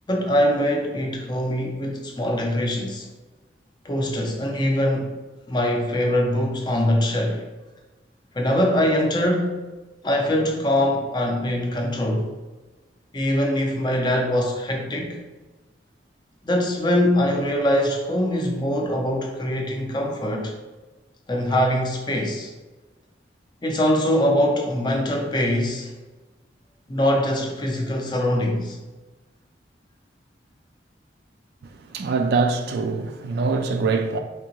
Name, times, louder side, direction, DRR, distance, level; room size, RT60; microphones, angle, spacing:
voice 1, 0.1-3.1 3.8-5.1 5.5-7.4 8.3-9.6 10.0-12.3 13.1-15.2 16.5-20.5 21.3-22.5 23.6-25.9 26.9-28.8, left 1 dB, 25° left, 0.5 m, -23 dB
voice 2, 31.9-34.2, right 4 dB, 60° right, 0.3 m, -23 dB
3.5 x 2.8 x 2.9 m
head